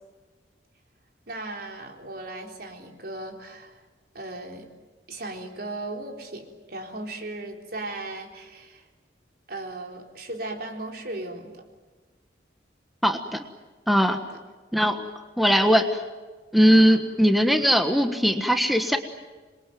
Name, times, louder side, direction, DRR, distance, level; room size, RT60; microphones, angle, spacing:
voice 1, 1.3-3.8 4.1-4.7 5.1-8.9 9.5-11.6 14.0-14.4 16.8-17.0, right 2 dB, 60° right, 2 dB, 3.9 m, -37 dB
voice 2, 13.0-13.4 13.9-14.2 14.7-15.1 15.4-15.9 16.5-19.0, equal, ahead, 6 dB, 1.3 m, -20 dB
27.0 x 22.0 x 9.3 m, 1.3 s
head